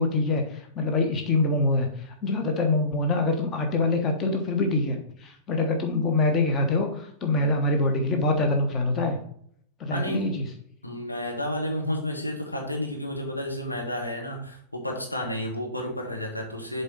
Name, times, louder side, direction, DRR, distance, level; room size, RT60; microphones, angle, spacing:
voice 1, 0.0-9.2 9.8-10.4, left 2 dB, 30° left, 4 dB, 1.3 m, -25 dB
voice 2, 9.9-10.2 10.8-16.8, left 1 dB, 85° left, 1 dB, 1.6 m, -31 dB
7.0 x 4.2 x 5.4 m, 0.66 s
figure-of-eight pair, 90°, 0 cm